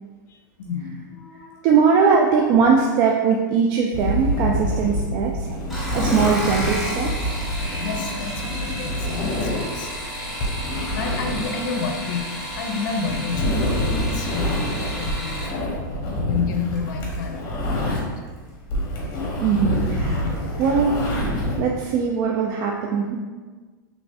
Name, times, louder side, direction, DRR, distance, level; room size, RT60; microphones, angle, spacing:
voice 1, 0.3-1.7 7.8-15.7 16.3-18.1, left 5 dB, 70° left, 4 dB, 0.5 m, -31 dB
voice 2, 1.6-5.5 5.9-7.1 19.4-21.3 21.6-23.2, right 5 dB, 40° right, -1 dB, 0.3 m, -20 dB
sound 1, 3.9-18.2 18.5-21.6, left 1 dB, 40° left, 1.0 m, -26 dB
sound 2, 5.6-15.5 16.7-17.2 17.7-18.1 18.4-18.5, equal, ahead, 1.1 m, -32 dB
3.2 x 3.1 x 2.7 m, 1.4 s
hypercardioid pair, 125°, 11 cm